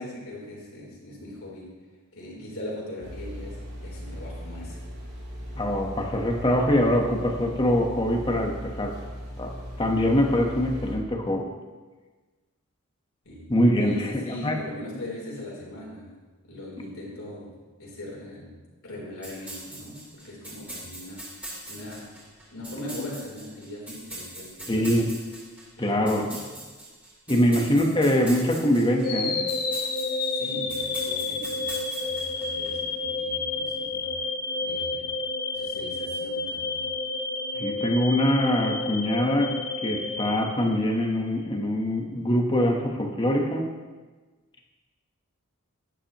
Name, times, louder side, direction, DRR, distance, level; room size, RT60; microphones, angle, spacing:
voice 1, 0.0-1.7 2.1-4.8 13.2-13.5 13.8-16.2 16.4-17.5 17.8-18.5 18.8-21.2 21.7-22.2 22.5-25.0 25.8-26.5 27.4-27.6 30.1-34.1 34.6-35.1 35.5-36.9, left 1 dB, 75° left, -4 dB, 3.6 m, -40 dB
sound 1, 3.0-10.9, equal, 70° right, 3.6 m, -38 dB
voice 2, 5.6-9.1 9.4-11.5 13.5-14.5 24.7-25.1 25.8-26.4 27.3-29.5 32.7-32.8 37.5-39.6 39.8-43.7, equal, 25° left, 2 dB, 1.2 m, -24 dB
sound 2, 19.2-32.7, right 1 dB, 10° right, 3.7 m, -42 dB
sound 3, 29.0-41.2, left 3 dB, 45° left, 1.1 m, -30 dB
11.5 x 9.9 x 3.0 m, 1.3 s
head